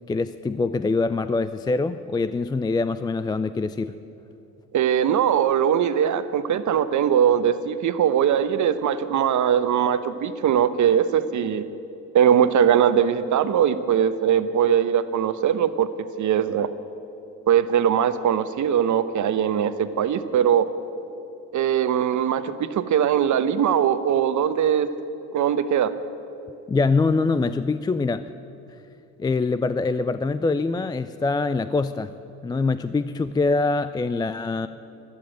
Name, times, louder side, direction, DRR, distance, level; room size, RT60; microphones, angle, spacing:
voice 1, 0.1-4.0 26.7-28.3 29.2-32.1 32.4-34.7, left 3 dB, 10° left, 12 dB, 0.3 m, -24 dB
voice 2, 4.7-11.6 12.1-15.9 16.2-16.7 17.5-20.7 21.5-24.9 25.3-25.9, right 9 dB, 50° right, 12 dB, 1.0 m, -21 dB
12.5 x 11.5 x 9.1 m, 2.9 s
hypercardioid pair, 65°, 39 cm